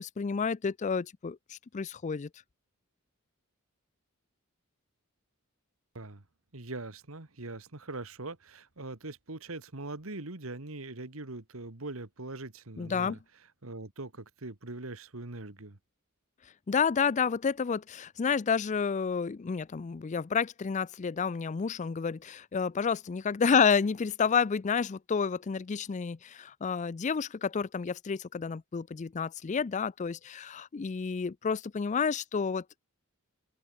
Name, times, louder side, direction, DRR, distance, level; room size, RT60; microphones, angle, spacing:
voice 1, 0.0-2.3 12.8-13.2 16.7-32.6, left 6 dB, 35° left, 0.4 m, -30 dB
voice 2, 6.5-13.2 13.6-15.8, right 2 dB, 70° right, 2.0 m, -42 dB
open air
head